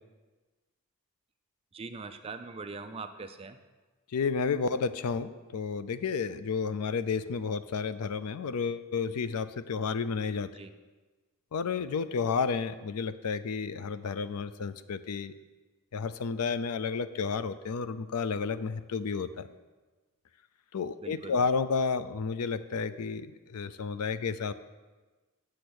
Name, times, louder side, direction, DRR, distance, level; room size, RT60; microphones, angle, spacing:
voice 1, 1.7-3.6 10.5-10.7 21.0-21.4, right 4 dB, 25° right, 8 dB, 0.4 m, -42 dB
voice 2, 4.1-10.5 11.5-15.3 15.9-19.5 20.7-24.5, left 5 dB, 85° left, 13 dB, 0.5 m, -31 dB
8.5 x 7.7 x 6.3 m, 1.3 s
head